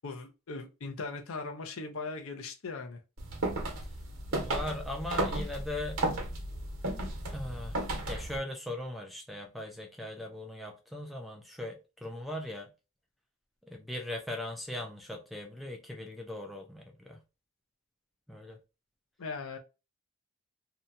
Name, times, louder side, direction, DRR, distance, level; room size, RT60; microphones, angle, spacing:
voice 1, 0.0-3.0 19.2-19.6, left 3 dB, 65° left, 0.6 m, -39 dB
sound 1, 3.2-8.4, right 1 dB, 70° right, 1.0 m, -34 dB
voice 2, 4.3-6.0 7.3-7.8 8.1-12.7 13.6-17.2 18.3-18.6, left 1 dB, ahead, 0.4 m, -39 dB
2.8 x 2.2 x 2.5 m
head